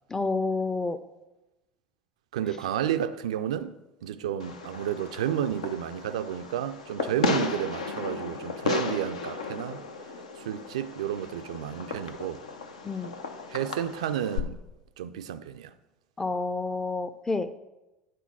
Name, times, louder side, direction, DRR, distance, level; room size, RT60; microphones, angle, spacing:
voice 1, 0.1-1.0 12.8-13.2 16.2-17.6, left 3 dB, 15° left, 0.5 m, -29 dB
voice 2, 2.3-10.1 10.4-12.4 13.5-14.6 15.0-15.7, right 10 dB, 65° right, 0.3 m, -31 dB
Fireworks, 4.4-14.4, left 4 dB, 75° left, 0.6 m, -34 dB
9.2 x 3.9 x 5.8 m
figure-of-eight pair, 65°, 4 cm